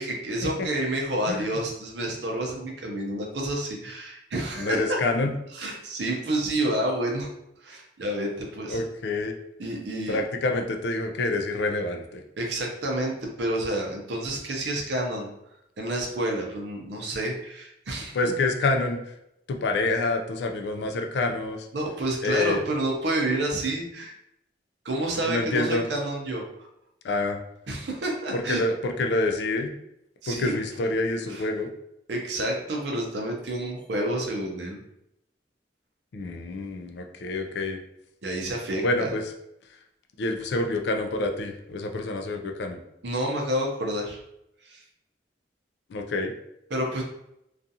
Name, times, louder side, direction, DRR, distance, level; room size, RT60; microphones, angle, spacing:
voice 1, 0.0-5.0 5.5-7.3 7.6-8.8 9.6-10.2 12.4-15.3 15.8-18.2 21.7-24.1 24.8-26.4 27.7-28.6 30.2-30.5 31.3-31.4 32.1-34.8 38.2-39.1 43.0-44.2 44.6-44.8 46.7-47.0, right 1 dB, 75° right, 1 dB, 0.6 m, -29 dB
voice 2, 1.3-1.6 4.6-5.3 8.7-9.4 10.1-12.2 18.1-19.1 19.5-21.7 22.2-22.6 25.2-25.9 27.0-27.4 28.3-29.7 30.3-31.7 36.1-37.8 38.8-39.3 40.2-42.8 45.9-46.3, left 2 dB, 75° left, 4 dB, 0.4 m, -27 dB
2.4 x 2.4 x 2.7 m, 0.81 s
head